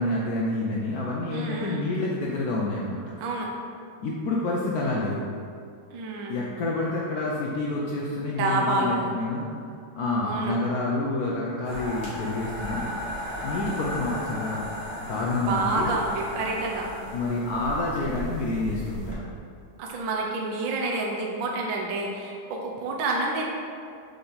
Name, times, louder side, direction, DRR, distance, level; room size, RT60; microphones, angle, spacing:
voice 1, 0.0-3.0 4.0-5.2 6.3-9.5 9.9-12.8 13.4-14.7 15.0-15.9 17.1-19.2, left 2 dB, 70° left, -3 dB, 0.9 m, -28 dB
voice 2, 1.3-1.9 3.2-3.5 5.9-6.5 8.3-9.1 10.2-10.6 15.4-16.9 19.8-23.5, right 2 dB, 70° right, -1 dB, 1.4 m, -28 dB
sound 1, 11.6-19.1, equal, 30° right, 1.4 m, -35 dB
5.7 x 5.0 x 4.0 m, 2.4 s
omnidirectional pair, 2.2 m